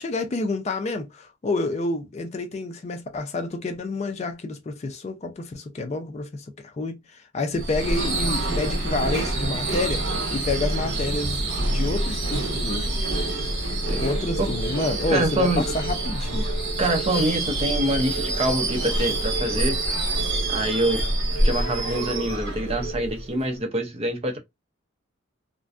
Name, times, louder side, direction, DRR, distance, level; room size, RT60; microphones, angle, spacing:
voice 1, 0.0-13.1 14.0-16.5, left 3 dB, 35° left, 0.3 m, -29 dB
Subway metro underground / Screech, 7.5-23.5, right 1 dB, 70° right, 1.0 m, -26 dB
sound 1, 13.1-23.1, right 3 dB, 50° left, 1.1 m, -37 dB
voice 2, 15.1-15.7 16.8-19.8 20.5-21.0 21.4-24.4, right 1 dB, 30° right, 0.5 m, -25 dB
2.5 x 2.1 x 2.4 m
head